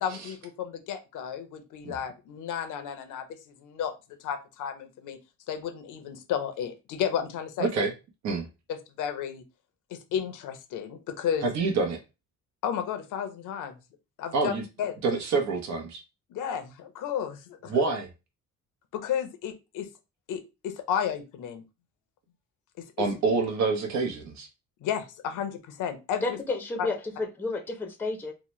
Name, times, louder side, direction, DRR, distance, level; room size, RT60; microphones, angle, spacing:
voice 1, 0.0-3.9 4.2-5.2 5.5-7.8 8.7-9.4 9.9-11.5 12.6-13.8 14.2-14.5 14.8-14.9 16.3-17.9 18.9-19.9 20.3-21.6 22.8-23.1 24.8-26.4 26.8-26.9, left 8 dB, 85° left, 8 dB, 0.7 m, -33 dB
voice 2, 7.6-7.9 8.2-8.5 11.4-12.0 14.3-14.6 15.0-16.0 17.7-18.1 23.0-24.5, right 4 dB, 65° right, 3 dB, 0.8 m, -27 dB
voice 3, 26.2-28.3, left 3 dB, 5° left, 4 dB, 0.6 m, -31 dB
2.8 x 2.1 x 3.1 m, 0.28 s
cardioid pair, 90°, 30 cm